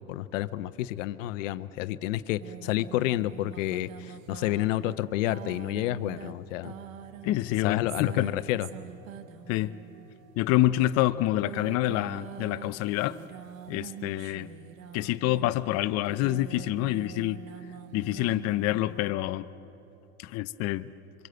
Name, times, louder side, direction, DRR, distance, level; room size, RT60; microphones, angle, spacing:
voice 1, 0.0-6.7 7.6-8.7, left 15 dB, 70° left, 13 dB, 0.9 m, -30 dB
sound 1, 2.4-19.1, right 9 dB, 85° right, 1.4 m, -45 dB
voice 2, 7.2-8.3 9.5-9.8 10.4-13.2 13.7-14.5 14.9-17.4 17.9-19.5 20.2-20.9, left 15 dB, 40° left, 10 dB, 0.7 m, -27 dB
25.5 x 24.5 x 7.9 m, 2.9 s
supercardioid pair, 115°, 39 cm